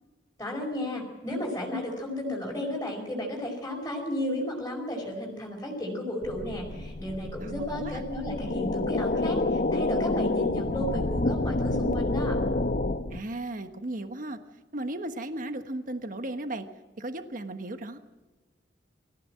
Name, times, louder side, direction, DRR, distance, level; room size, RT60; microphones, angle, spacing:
voice 1, 0.4-12.4, left 1 dB, 15° left, -5 dB, 5.0 m, -33 dB
sound 1, 6.2-13.2, left 2 dB, 50° left, 1.0 m, -28 dB
voice 2, 7.4-8.0 13.1-14.4 14.7-16.7 17.0-18.0, right 1 dB, 50° right, 8 dB, 1.3 m, -35 dB
25.0 x 15.0 x 7.5 m, 1.2 s
head